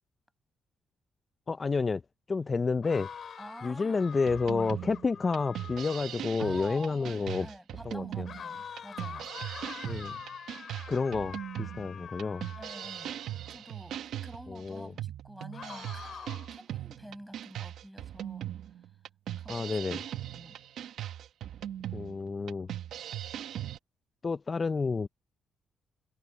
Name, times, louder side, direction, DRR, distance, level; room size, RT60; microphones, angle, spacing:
voice 1, 1.5-2.0 2.3-3.1 3.6-7.5 7.9-8.3 9.8-10.2 10.9-12.5 14.5-14.9 19.5-20.0 21.9-22.7 24.2-25.1, left 4 dB, 30° left, 0.4 m, -30 dB
sound 1, 2.8-6.2 8.3-13.5 15.5-16.6, left 7 dB, 55° left, 4.3 m, -45 dB
voice 2, 3.4-4.1 6.4-9.3 12.6-13.2 13.5-18.5 19.4-19.8 20.1-20.6, equal, 5° right, 5.6 m, -48 dB
sound 2, 4.3-23.8, right 11 dB, 75° right, 1.1 m, -39 dB
cardioid pair, 90°, 0 cm